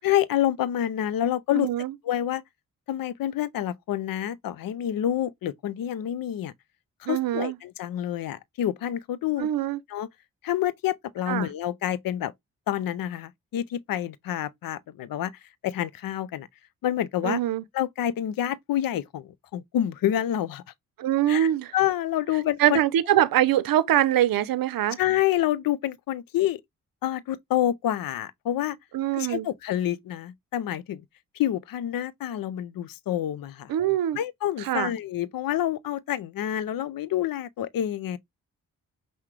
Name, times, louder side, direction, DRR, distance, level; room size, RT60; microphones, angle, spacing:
voice 1, 0.0-1.7 2.0-2.4 2.9-6.5 7.0-9.5 9.9-10.1 10.4-12.3 12.7-15.3 15.6-16.5 16.8-17.4 17.7-20.6 21.3-22.8 25.0-26.6 27.0-28.8 29.1-31.0 31.3-33.7 34.1-38.2, left 12 dB, 70° left, 0.6 m, -28 dB
voice 2, 1.5-1.9 7.1-7.6 9.4-9.8 11.3-11.5 17.2-17.6 21.0-21.7 22.6-25.0 28.9-29.5 33.7-34.2 34.6-34.9, right 12 dB, 70° right, 0.6 m, -23 dB
5.7 x 2.2 x 3.3 m
supercardioid pair, 45°, 36 cm